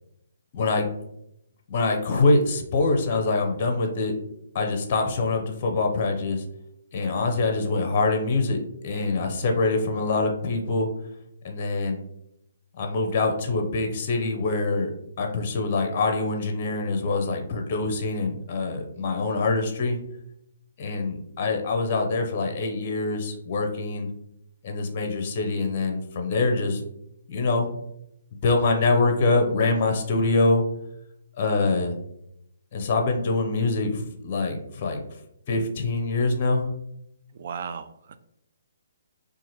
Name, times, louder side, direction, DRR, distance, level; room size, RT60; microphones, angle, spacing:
voice 1, 0.5-0.9 1.7-4.1 4.5-6.4 6.9-10.9 11.4-12.0 12.7-14.9 15.2-20.0 20.8-24.1 24.6-26.8 27.3-27.8 28.4-30.6 31.4-32.0 32.7-35.0 35.5-36.7, left 3 dB, 40° left, 4 dB, 0.7 m, -24 dB
voice 2, 37.3-38.2, right 6 dB, 50° right, 10 dB, 0.3 m, -35 dB
2.8 x 2.5 x 4.0 m, 0.79 s
figure-of-eight pair, 140°, 0 cm